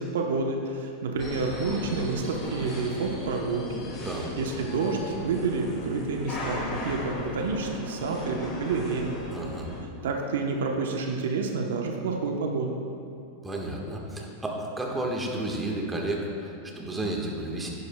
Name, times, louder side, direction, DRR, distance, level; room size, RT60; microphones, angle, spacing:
voice 1, 0.0-3.8 4.4-9.5 10.0-12.8, right 4 dB, 85° right, 2 dB, 0.9 m, -29 dB
sound 1, 1.2-9.8, left 2 dB, 35° left, 2.1 m, -37 dB
voice 2, 9.3-9.7 13.4-17.7, right 1 dB, 10° right, -1 dB, 1.4 m, -32 dB
10.5 x 10.5 x 2.2 m, 2.6 s
supercardioid pair, 130°, 0 cm